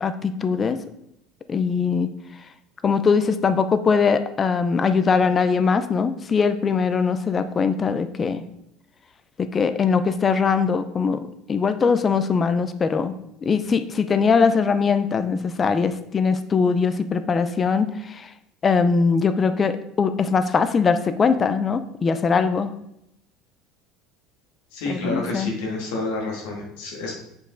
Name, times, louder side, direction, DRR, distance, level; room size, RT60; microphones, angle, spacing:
voice 1, 0.0-0.8 1.5-2.1 2.8-8.4 9.4-13.1 13.4-18.3 18.6-22.7 24.9-25.5, left 5 dB, 25° left, 11 dB, 0.6 m, -21 dB
voice 2, 24.7-27.2, left 2 dB, 85° left, -1 dB, 2.3 m, -29 dB
6.6 x 5.2 x 3.9 m, 0.80 s
supercardioid pair, 125°, 0 cm